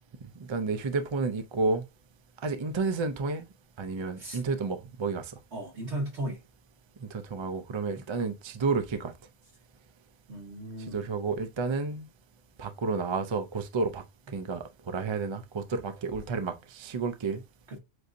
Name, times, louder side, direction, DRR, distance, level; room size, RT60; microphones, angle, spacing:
voice 1, 0.2-1.8 2.4-3.5 3.8-5.3 7.0-9.1 10.9-12.1 12.6-14.0 14.3-17.4, right 4 dB, 40° right, 0.4 m, -31 dB
voice 2, 5.5-6.4 10.3-11.1 17.7-17.8, right 1 dB, 70° right, 2.1 m, -36 dB
7.7 x 2.7 x 2.5 m
omnidirectional pair, 1.2 m